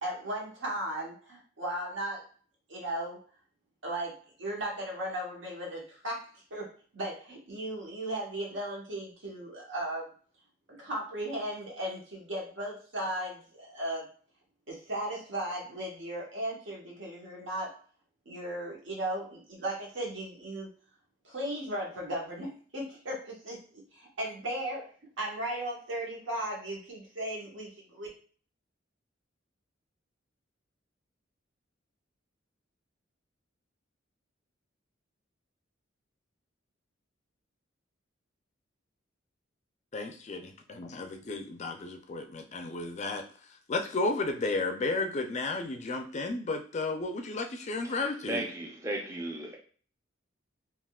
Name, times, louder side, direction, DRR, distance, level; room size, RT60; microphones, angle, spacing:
voice 1, 0.0-2.3 2.7-3.2 3.8-6.7 6.9-10.1 10.7-14.1 14.7-17.7 18.3-20.7 21.2-23.6 23.9-24.9 25.2-28.1, right 1 dB, 75° right, 1.1 m, -36 dB
voice 2, 39.9-43.2 43.7-48.5, left 3 dB, 35° left, 0.4 m, -33 dB
voice 3, 48.3-49.6, right 1 dB, 15° right, 0.5 m, -35 dB
3.4 x 2.4 x 2.3 m
head